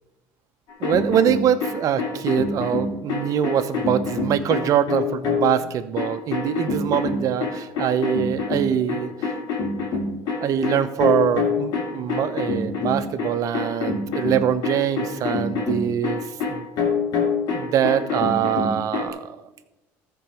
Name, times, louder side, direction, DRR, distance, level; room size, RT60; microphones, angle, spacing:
sound 1, 0.7-5.6 6.0-19.1, left 4 dB, 65° left, 2.8 m, -26 dB
voice 1, 0.8-9.1 10.4-16.2 16.5-16.6 17.5-19.4, right 9 dB, 55° right, 10 dB, 0.9 m, -23 dB
14.0 x 4.7 x 6.3 m, 0.98 s
supercardioid pair, 90°, 7 cm